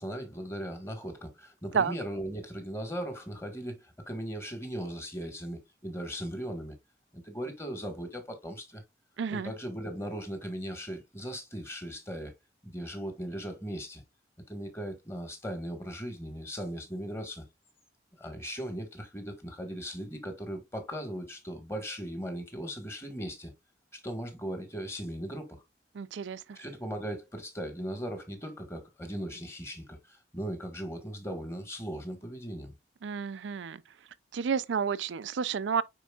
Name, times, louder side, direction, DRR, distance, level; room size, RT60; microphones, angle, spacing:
voice 1, 0.0-6.8 7.1-8.8 9.3-12.3 12.6-14.0 14.5-17.4 18.2-23.5 23.9-25.6 26.5-32.7, equal, 15° left, 1.6 m, -38 dB
voice 2, 9.2-9.5 25.9-26.4 33.0-33.8 34.3-35.8, right 6 dB, 80° right, 0.4 m, -30 dB
9.3 x 4.6 x 2.4 m
head